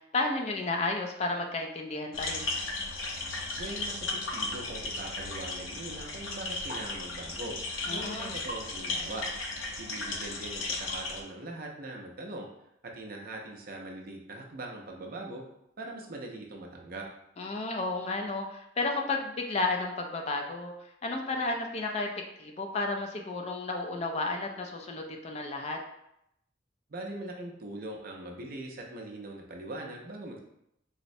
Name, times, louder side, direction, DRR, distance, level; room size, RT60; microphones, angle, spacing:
voice 1, 0.1-2.5 7.9-8.3 17.4-20.7 21.0-22.1 22.4-25.8, left 3 dB, 35° left, 2 dB, 0.3 m, -32 dB
sound 1, 2.1-11.2, left 2 dB, 90° left, 0.5 m, -35 dB
voice 2, 3.6-7.6 7.9-9.3 9.8-12.5 12.8-15.4 15.8-17.1 26.9-30.4, right 2 dB, 50° right, 0 dB, 0.5 m, -41 dB
4.0 x 2.0 x 2.6 m, 0.80 s
head